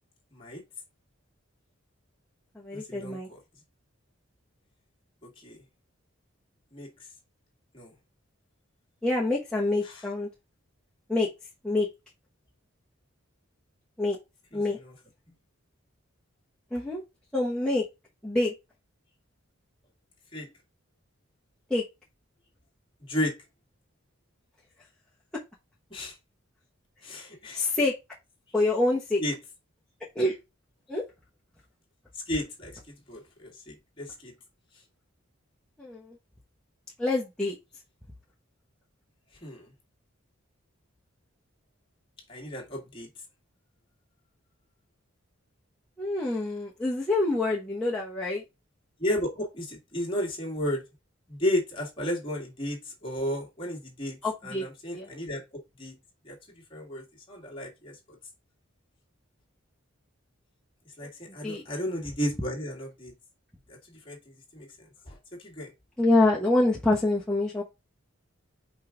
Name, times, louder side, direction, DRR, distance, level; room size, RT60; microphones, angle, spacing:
voice 1, 0.3-0.6 2.7-3.4 5.4-5.6 6.7-6.9 7.7-7.9 9.8-10.0 14.5-14.9 20.3-20.5 23.1-23.3 25.9-26.1 27.0-27.6 29.2-29.3 32.3-34.3 39.4-39.7 42.3-43.1 49.0-50.8 51.3-54.2 54.4-55.4 55.8-55.9 56.2-56.4 56.7-58.0 61.0-63.1 63.7-64.2 64.5-64.7 65.1-65.2 65.4-65.7, left 1 dB, 25° left, 1.9 m, -33 dB
voice 2, 2.5-3.3 9.0-10.3 11.1-11.3 11.6-11.9 14.0-14.2 14.5-14.8 16.7-17.0 17.3-17.8 18.2-18.5 21.7-21.8 27.5-27.9 28.5-29.2 30.1-30.4 30.9-31.0 35.8-36.1 37.0-37.5 46.0-48.4 54.2-54.6 54.9-55.1 61.4-61.6 66.0-67.6, left 2 dB, 5° left, 1.1 m, -26 dB
5.4 x 4.7 x 3.8 m
head